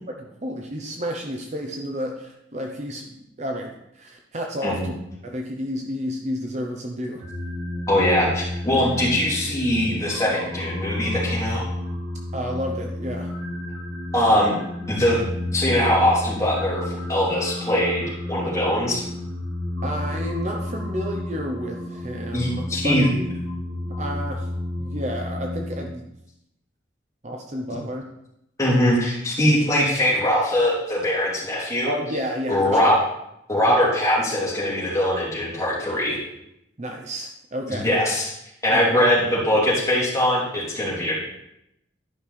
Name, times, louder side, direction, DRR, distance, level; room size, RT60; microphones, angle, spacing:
voice 1, 0.1-4.9 5.2-7.3 12.3-13.3 19.8-23.2 24.0-24.5 24.8-26.1 27.2-28.0 31.8-32.8 33.7-33.8 36.8-37.9 38.7-38.9, equal, 35° right, 2 dB, 0.7 m, -31 dB
sound 1, 7.2-25.9, left 1 dB, 80° right, 2.6 m, -31 dB
voice 2, 7.9-11.6 14.1-14.5 14.9-15.2 15.5-19.0 22.3-23.1 28.6-31.9 32.5-33.0 33.5-36.2 37.7-38.3 38.6-41.2, left 1 dB, 15° left, -7 dB, 3.1 m, -21 dB
11.5 x 5.5 x 4.2 m, 0.82 s
head